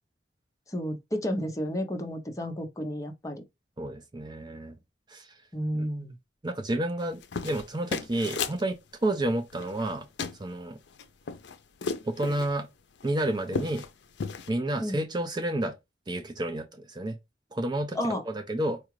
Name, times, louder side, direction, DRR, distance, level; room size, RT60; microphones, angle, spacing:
voice 1, 0.7-3.4 5.5-6.1 14.8-15.0 17.9-18.2, equal, 20° left, 0.7 m, -31 dB
voice 2, 3.8-4.8 5.1-5.3 5.7-5.9 6.4-10.1 10.4-10.8 12.0-12.7 13.0-13.8 14.5-15.7 16.1-17.2 17.5-18.8, right 1 dB, 25° right, 0.5 m, -30 dB
sound 1, 7.0-8.6 9.5-9.9 10.2-10.4 10.9-12.5 13.0-13.1 13.4-13.9 14.2-14.5, left 5 dB, 75° left, 0.5 m, -34 dB
4.6 x 2.4 x 3.2 m
head